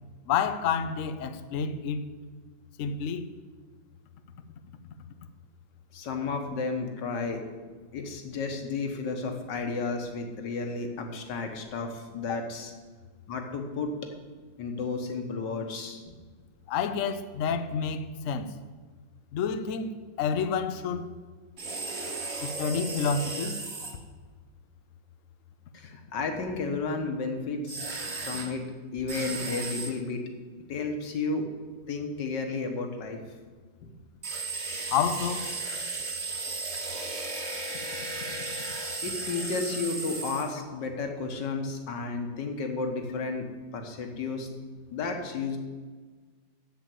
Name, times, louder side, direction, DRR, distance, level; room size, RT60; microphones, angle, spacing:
voice 1, 0.3-2.1 2.8-3.3 12.3-12.4 16.7-18.5 19.3-21.1 22.4-23.6 34.9-35.5, left 6 dB, 85° left, 0.6 m, -29 dB
voice 2, 5.9-7.4 7.9-12.7 13.3-13.9 14.6-16.0 25.7-28.0 28.2-28.7 28.9-30.2 30.7-31.5 31.9-33.2 38.7-44.5 44.9-45.6, left 4 dB, 60° left, 1.8 m, -32 dB
sound 1, 21.6-23.9 27.7-28.5 29.1-29.9 34.2-40.5, right 3 dB, 35° right, 1.6 m, -35 dB
7.7 x 7.3 x 8.5 m
omnidirectional pair, 2.2 m